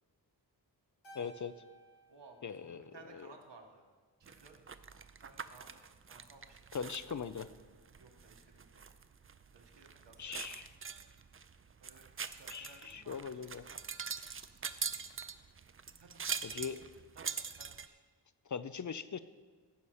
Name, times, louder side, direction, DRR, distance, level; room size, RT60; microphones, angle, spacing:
Keyboard (musical), 1.0-3.6, right 2 dB, 85° left, 2.8 m, -58 dB
voice 1, 1.1-1.5 2.4-2.9 6.7-7.5 10.2-10.7 12.5-13.6 16.4-16.8 18.5-19.2, left 6 dB, 45° left, 13 dB, 0.5 m, -40 dB
voice 2, 2.1-3.8 4.2-4.6 5.2-7.0 8.0-8.8 9.5-10.7 11.8-13.7 16.0-16.9 17.1-18.0, right 3 dB, 75° right, 2 dB, 1.7 m, -59 dB
sound 1, 4.2-17.9, right 6 dB, 30° right, 0.5 m, -44 dB
15.0 x 5.5 x 6.4 m, 1.4 s
wide cardioid pair, 110°, 42 cm